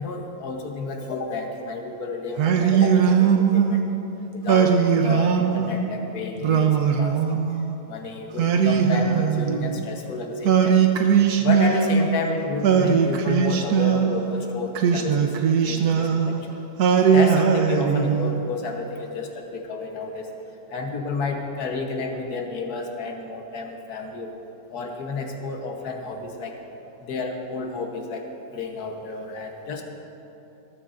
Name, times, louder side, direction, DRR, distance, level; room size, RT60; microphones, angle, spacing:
voice 1, 0.0-3.8 4.3-4.7 5.0-7.4 7.9-10.8 11.4-15.3 15.6-16.4 17.1-20.3 20.7-24.3 24.7-26.5 27.0-29.8, left 3 dB, 85° left, 2 dB, 1.6 m, -31 dB
Singing, 2.4-3.8 4.5-5.8 6.4-7.7 8.4-9.9 10.5-12.2 12.6-14.3 14.8-16.4 16.8-18.4, right 7 dB, 85° right, 1.3 m, -20 dB
20.0 x 13.0 x 2.6 m, 3.0 s
omnidirectional pair, 1.6 m